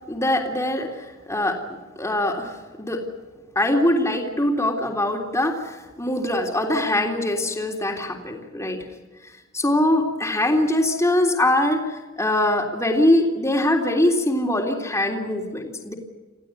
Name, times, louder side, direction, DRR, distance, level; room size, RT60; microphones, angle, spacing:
voice 1, 0.1-1.6 2.0-2.5 2.8-3.0 3.5-8.8 9.5-15.9, left 1 dB, 15° left, 1 dB, 3.4 m, -22 dB
27.5 x 16.0 x 9.5 m, 1.2 s
head